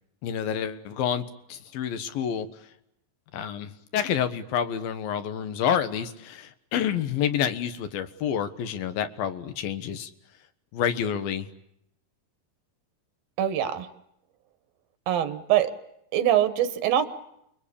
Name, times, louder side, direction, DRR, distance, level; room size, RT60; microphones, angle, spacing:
voice 1, 0.2-2.5 3.3-10.1 10.7-11.5, left 9 dB, 90° left, 10 dB, 3.2 m, -28 dB
voice 2, 13.4-13.9 15.1-15.7 16.1-17.0, right 11 dB, 80° right, 11 dB, 3.2 m, -23 dB
29.0 x 22.5 x 8.6 m, 0.77 s
omnidirectional pair, 4.1 m